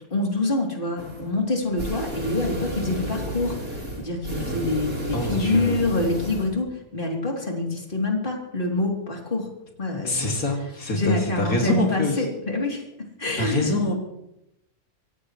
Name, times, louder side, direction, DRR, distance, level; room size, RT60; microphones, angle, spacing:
voice 1, 0.1-9.5 9.8-10.4 10.9-12.9 13.2-13.8, left 2 dB, 40° left, 0 dB, 3.4 m, -26 dB
sound 1, 1.0-1.3 1.6-6.5, right 1 dB, 80° right, 4.7 m, -32 dB
voice 2, 5.1-5.8 10.0-12.3 13.4-13.9, left 2 dB, 90° left, 0 dB, 3.0 m, -25 dB
25.5 x 17.0 x 3.2 m, 0.84 s
omnidirectional pair, 1.4 m